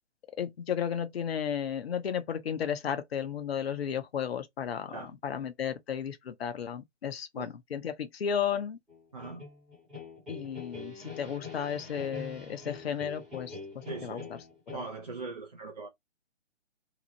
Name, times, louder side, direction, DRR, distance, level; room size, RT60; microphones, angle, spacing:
voice 1, 0.4-5.0 5.2-8.8 10.3-14.2 14.7-14.8, left 8 dB, 55° left, 0.6 m, -34 dB
sound 1, 8.9-14.7, left 4 dB, ahead, 0.7 m, -44 dB
voice 2, 9.1-9.5 13.9-14.3 14.7-15.9, right 3 dB, 35° right, 0.4 m, -40 dB
2.8 x 2.1 x 2.7 m
figure-of-eight pair, 140°, 37 cm